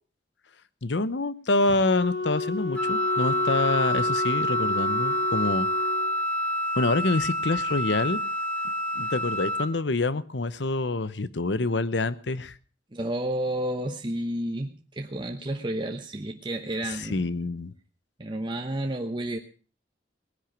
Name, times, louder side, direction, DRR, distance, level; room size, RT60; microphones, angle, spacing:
voice 1, 0.8-5.7 6.8-8.2 8.9-12.6 17.0-17.7, left 2 dB, 90° left, 16 dB, 0.9 m, -26 dB
Wind instrument woodwind instrument, 1.8-6.1, left 2 dB, 70° left, 1.2 m, -31 dB
Wind instrument woodwind instrument 2, 2.8-9.7, equal, 5° left, 1.7 m, -27 dB
voice 2, 12.9-17.2 18.2-19.4, right 1 dB, 25° right, 4 dB, 0.9 m, -31 dB
19.0 x 10.0 x 6.0 m, 0.39 s
head